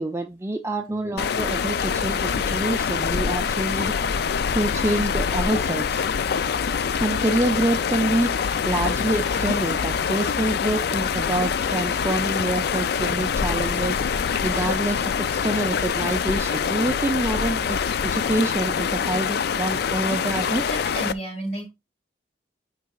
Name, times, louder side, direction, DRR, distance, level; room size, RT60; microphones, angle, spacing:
voice 1, 0.0-4.0 4.5-6.1 7.0-8.3 8.6-14.0 14.4-20.6, right 1 dB, 15° right, 0.4 m, -26 dB
sound 1, 1.2-21.1, left 6 dB, 55° left, 0.3 m, -25 dB
voice 2, 20.7-21.7, right 1 dB, 40° left, 3.4 m, -31 dB
9.2 x 4.7 x 2.4 m
head